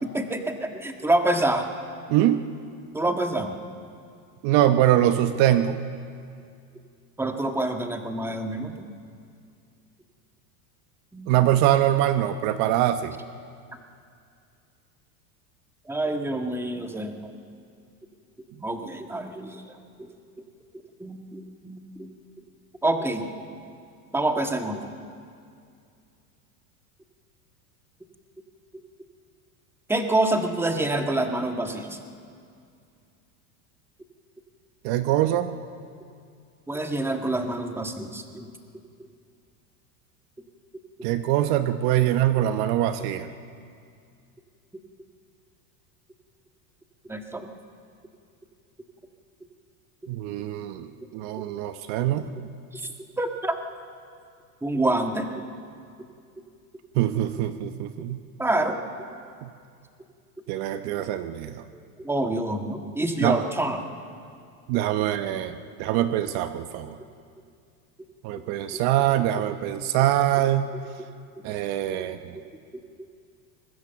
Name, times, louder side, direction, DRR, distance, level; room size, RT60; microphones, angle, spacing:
voice 1, 0.0-1.7 2.9-3.6 7.2-8.9 11.1-11.3 15.9-17.3 18.6-19.7 20.0-20.1 21.0-22.1 22.8-23.3 24.1-24.9 29.9-32.0 36.7-38.5 47.1-47.5 52.7-52.9 53.2-53.5 54.6-55.4 58.4-58.8 61.7-63.9 72.3-72.4, right 1 dB, 5° right, 4 dB, 1.6 m, -27 dB
voice 2, 2.1-2.4 4.4-5.8 11.3-13.1 34.8-35.5 41.0-43.3 50.1-50.9 51.1-52.3 57.0-58.2 59.4-59.5 60.5-61.6 63.2-63.4 64.7-67.0 68.2-70.7 71.4-72.3, right 12 dB, 55° right, 9 dB, 1.0 m, -23 dB
24.5 x 20.5 x 7.0 m, 2.3 s
supercardioid pair, 125°, 46 cm